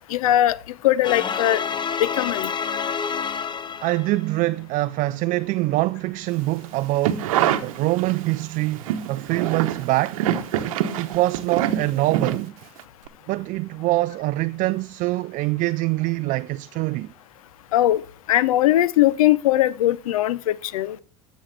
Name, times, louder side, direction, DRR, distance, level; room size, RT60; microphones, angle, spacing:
voice 1, 0.1-1.6 2.0-2.5 17.7-18.0 18.3-21.0, left 13 dB, 80° left, 0.6 m, -20 dB
sound 1, 1.0-4.3, left 6 dB, 25° left, 0.8 m, -28 dB
voice 2, 3.8-7.3 7.6-10.2 11.0-12.5 13.3-17.1, right 19 dB, 50° right, 0.4 m, -24 dB
sound 2, 6.8-8.4 8.7-12.8 13.1-13.2, right 11 dB, 75° right, 0.9 m, -25 dB
14.5 x 6.2 x 3.3 m
hypercardioid pair, 80°, 18 cm